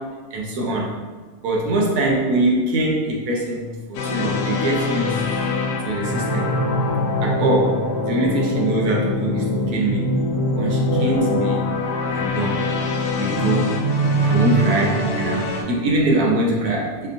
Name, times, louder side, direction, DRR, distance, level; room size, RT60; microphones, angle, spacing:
voice 1, 0.3-0.9 1.4-5.3 5.8-6.5 7.2-7.8 8.0-10.1 10.5-11.6 12.1-12.6 13.1-13.8 14.2-17.1, right 1 dB, 70° right, -2 dB, 1.2 m, -23 dB
sound 1, 3.9-15.6, left 4 dB, 80° left, 1.2 m, -24 dB
sound 2, 5.8-7.8 9.5-11.5 13.2-15.2, right 4 dB, 55° right, 1.5 m, -24 dB
4.4 x 2.5 x 2.5 m, 1.4 s
omnidirectional pair, 1.7 m